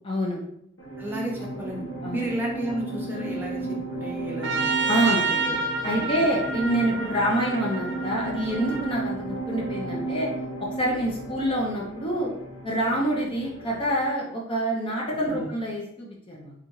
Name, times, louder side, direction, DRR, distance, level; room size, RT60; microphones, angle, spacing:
voice 1, 0.0-0.4 2.0-2.2 4.9-5.2 5.8-10.3 10.6-12.3 12.6-16.5, equal, 25° left, -3 dB, 0.6 m, -26 dB
sound 1, 0.8-14.1, right 2 dB, 75° left, 1.1 m, -34 dB
voice 2, 1.0-1.8 2.1-4.7 5.3-5.5 5.8-6.1 6.5-6.6 15.3-15.5, equal, 10° right, -3 dB, 0.9 m, -33 dB
Trumpet, 4.4-9.0, right 4 dB, 65° right, 0.5 m, -29 dB
3.6 x 3.3 x 3.0 m, 0.75 s
head